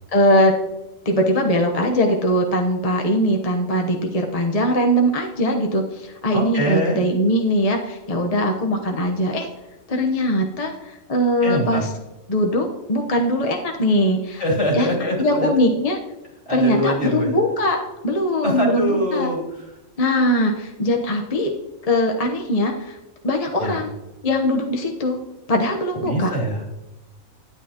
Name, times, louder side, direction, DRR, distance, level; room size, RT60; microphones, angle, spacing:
voice 1, 0.1-0.5 1.0-9.5 9.9-11.9 12.3-14.4 14.7-14.9 15.2-16.0 16.5-19.3 20.0-21.5 21.9-23.0 23.2-23.9 24.2-25.2 25.5-26.3, equal, 30° left, 2 dB, 0.9 m, -21 dB
voice 2, 6.3-7.0 11.4-11.8 14.4-15.5 16.5-17.4 18.4-19.4 23.6-23.8 26.0-26.9, equal, 55° left, -3 dB, 3.2 m, -23 dB
11.5 x 10.0 x 2.9 m, 0.99 s
omnidirectional pair, 1.5 m